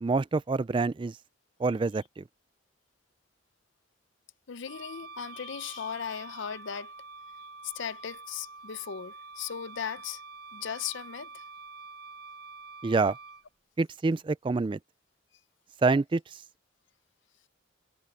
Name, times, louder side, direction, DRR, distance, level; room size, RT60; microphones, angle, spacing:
voice 1, 0.0-1.1 1.6-2.2 12.8-13.2 13.8-14.8 15.8-16.2, right 3 dB, 25° right, 0.3 m, -26 dB
voice 2, 4.5-6.9 7.4-10.2 10.5-11.4, left 8 dB, 65° left, 0.6 m, -37 dB
Wind instrument woodwind instrument, 4.6-13.4, right 3 dB, 50° right, 0.9 m, -46 dB
head